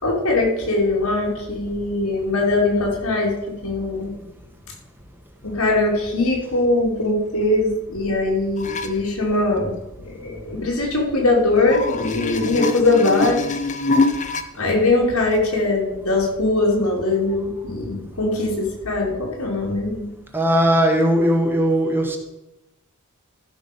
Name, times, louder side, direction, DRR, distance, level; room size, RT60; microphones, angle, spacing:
voice 1, 0.0-3.3 3.6-4.2 5.4-9.7 10.0-13.5 14.5-20.1, left 2 dB, 80° left, -1 dB, 3.2 m, -21 dB
sound 1, 8.6-8.9 11.6-14.4 15.3-15.4, left 3 dB, 35° left, 0.8 m, -24 dB
voice 2, 20.3-22.2, equal, 10° right, 3 dB, 1.3 m, -18 dB
14.0 x 6.1 x 5.4 m, 0.96 s
head